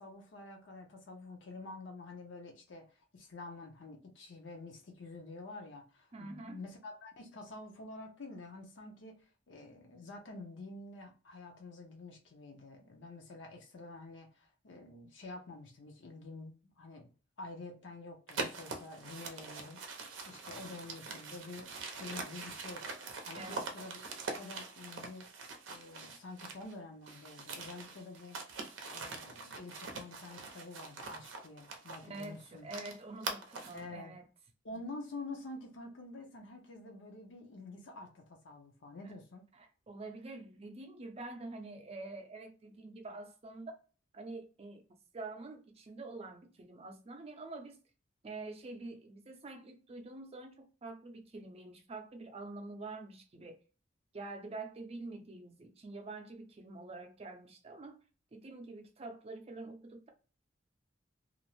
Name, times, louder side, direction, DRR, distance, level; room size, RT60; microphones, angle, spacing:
voice 1, 0.0-9.2 9.5-17.1 17.4-22.9 23.2-24.0 24.3-25.3 25.7-28.5 28.9-32.7 33.7-34.2 34.6-39.5, left 2 dB, 70° left, 0.6 m, -48 dB
voice 2, 6.1-6.7 23.3-23.7 32.1-34.2 39.0-39.1 39.5-43.7 44.1-44.8 45.1-47.8 48.2-53.6 54.1-58.0 58.3-60.1, right 2 dB, 30° right, 0.5 m, -46 dB
sound 1, 18.3-26.7 27.0-33.8, right 4 dB, 80° right, 0.5 m, -43 dB
2.5 x 2.0 x 2.9 m
head